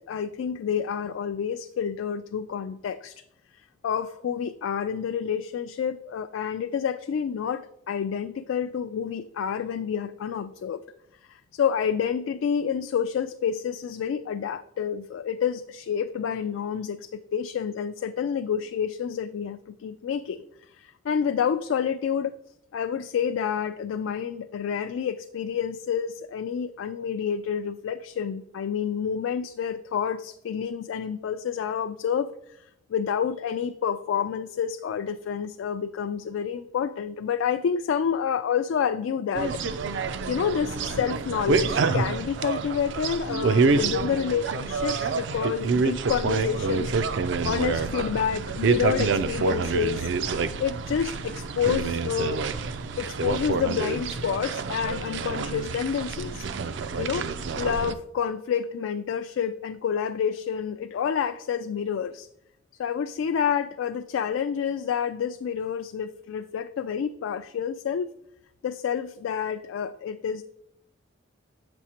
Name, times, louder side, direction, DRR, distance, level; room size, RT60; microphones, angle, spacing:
voice 1, 0.1-3.2 3.8-10.8 11.3-22.4 22.7-32.3 32.9-39.6 40.3-46.9 47.4-50.1 50.6-52.4 53.0-56.5 57.0-57.3 57.6-62.3 62.8-68.1 68.6-70.4, left 7 dB, 90° left, 9 dB, 0.3 m, -28 dB
sound 1, 39.3-57.9, right 4 dB, 65° right, 0.4 m, -27 dB
7.9 x 6.1 x 2.8 m, 0.77 s
head